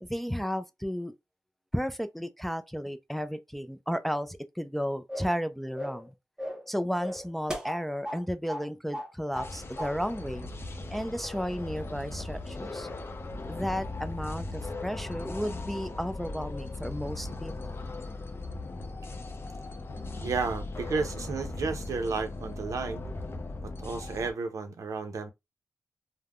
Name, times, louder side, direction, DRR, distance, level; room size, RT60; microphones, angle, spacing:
voice 1, 0.0-1.1 1.7-6.1 6.7-10.5 10.9-12.9 13.5-17.8, equal, 5° left, 0.4 m, -33 dB
sound 1, 5.1-5.4 5.7-6.1 6.4-6.7 7.0-8.2 8.5-8.7 8.9-9.5 9.8-9.9, equal, 15° right, 1.0 m, -36 dB
sound 2, 9.3-24.3, left 2 dB, 45° left, 0.6 m, -38 dB
voice 2, 20.2-23.0 23.6-25.3, right 4 dB, 75° right, 0.6 m, -32 dB
3.4 x 2.1 x 2.3 m
cardioid pair, 50°, 6 cm